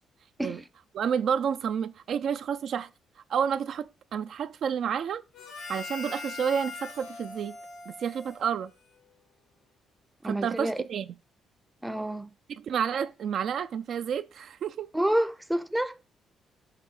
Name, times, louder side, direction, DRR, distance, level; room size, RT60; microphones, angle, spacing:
voice 1, 0.9-2.9 3.3-5.2 5.7-7.6 7.9-8.7 10.2-11.1 12.5-14.9, right 7 dB, 65° right, 0.3 m, -30 dB
Harmonica, 5.3-9.1, left 4 dB, 85° left, 2.7 m, -42 dB
voice 2, 10.2-10.8 11.8-12.3 14.9-15.9, right 1 dB, 5° right, 0.5 m, -28 dB
6.6 x 2.6 x 5.3 m
cardioid pair, 90°, 0 cm